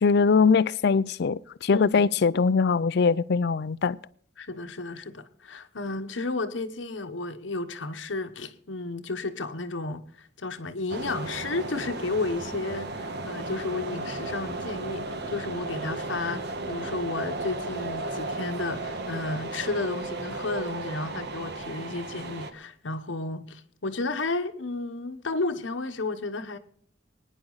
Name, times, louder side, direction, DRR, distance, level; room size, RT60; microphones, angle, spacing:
voice 1, 0.0-4.0, left 5 dB, 60° left, 0.5 m, -22 dB
voice 2, 1.7-2.1 4.4-26.6, left 3 dB, 90° left, 1.1 m, -32 dB
sound 1, 10.9-22.5, right 2 dB, 60° right, 1.3 m, -34 dB
23.0 x 10.0 x 4.0 m
head